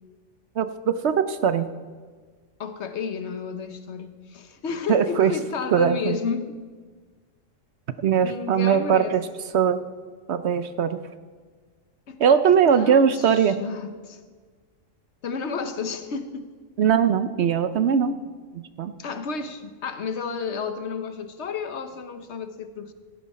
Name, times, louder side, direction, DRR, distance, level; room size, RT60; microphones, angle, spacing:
voice 1, 0.5-1.7 4.9-5.3 5.7-6.2 8.0-9.3 9.5-9.8 10.3-11.0 12.2-13.6 16.8-18.2 18.5-18.9, right 7 dB, 65° right, 12 dB, 0.9 m, -20 dB
voice 2, 2.6-6.5 8.2-9.1 12.1-12.2 12.7-14.2 15.2-16.5 19.0-22.9, left 5 dB, 60° left, 9 dB, 1.2 m, -32 dB
16.5 x 12.5 x 4.2 m, 1.5 s
omnidirectional pair, 1.3 m